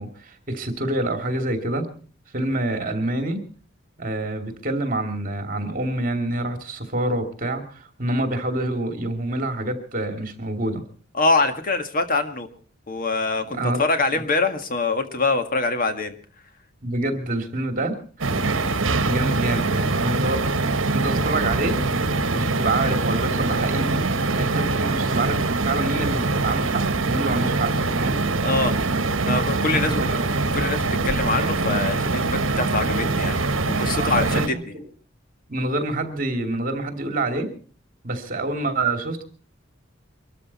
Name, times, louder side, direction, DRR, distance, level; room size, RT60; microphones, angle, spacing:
voice 1, 0.0-1.9 2.3-3.4 4.0-10.8 13.4-13.8 14.1-14.2 16.8-18.3 19.0-20.4 20.9-21.8 22.3-24.0 24.3-28.2 29.8-30.2 33.9-34.6 35.5-37.5 38.0-39.2, right 2 dB, 45° right, 6 dB, 2.7 m, -27 dB
voice 2, 11.1-12.5 12.9-16.1 28.4-28.7 29.3-30.1 30.5-34.5, left 3 dB, 45° left, 8 dB, 1.8 m, -24 dB
sound 1, 18.2-34.5, right 3 dB, 70° right, 1.3 m, -23 dB
24.5 x 13.5 x 4.2 m, 0.41 s
head